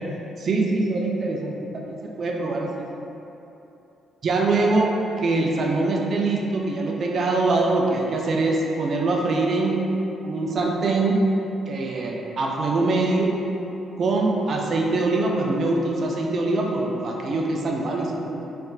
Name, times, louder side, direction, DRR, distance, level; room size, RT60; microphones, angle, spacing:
voice 1, 0.4-2.9 4.2-4.9 5.2-9.9 10.2-11.2 11.7-13.3 14.0-18.5, right 2 dB, 55° right, 0 dB, 0.5 m, -23 dB
4.3 x 3.4 x 2.4 m, 2.9 s
cardioid pair, 90°, 0 cm